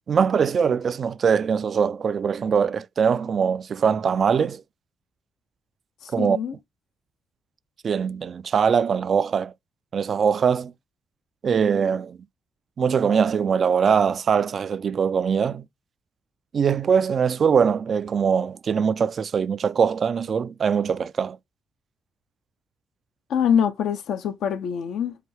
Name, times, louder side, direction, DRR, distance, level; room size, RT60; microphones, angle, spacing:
voice 1, 0.1-4.6 6.1-6.4 7.8-9.5 9.9-10.7 11.4-12.2 12.8-15.6 16.5-21.4, right 6 dB, 50° right, 0.3 m, -22 dB
voice 2, 6.0-6.5 23.3-25.2, left 8 dB, 80° left, 0.5 m, -24 dB
4.8 x 2.7 x 3.2 m
cardioid pair, 90°, 0 cm